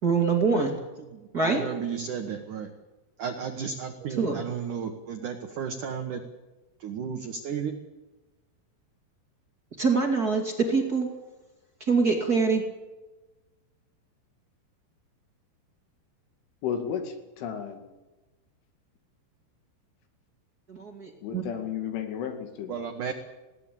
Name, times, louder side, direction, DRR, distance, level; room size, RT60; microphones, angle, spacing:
voice 1, 0.0-0.8 1.3-1.7 4.1-4.4 9.8-11.1 11.8-12.6 20.7-21.4, right 4 dB, 30° right, 1 dB, 1.9 m, -24 dB
voice 2, 1.1-2.7 3.2-6.2 6.8-7.7 22.7-23.1, right 7 dB, 65° right, 6 dB, 2.2 m, -33 dB
voice 3, 16.6-17.8 21.2-22.8, left 8 dB, 80° left, 6 dB, 4.8 m, -33 dB
21.0 x 17.5 x 8.6 m, 1.1 s
omnidirectional pair, 5.5 m